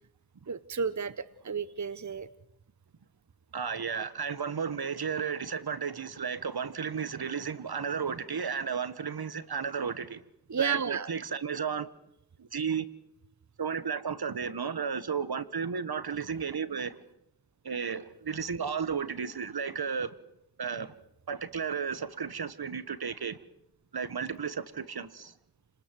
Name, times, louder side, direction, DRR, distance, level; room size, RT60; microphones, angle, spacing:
voice 1, 0.5-2.3 10.5-11.1, right 6 dB, 45° right, 1.0 m, -32 dB
voice 2, 3.5-10.2 10.6-11.9 12.4-12.8 13.6-17.0 17.6-20.1 20.6-20.9 21.3-23.4 23.9-25.3, right 6 dB, 70° right, 1.5 m, -33 dB
29.5 x 20.0 x 7.8 m
cardioid pair, 40°, 39 cm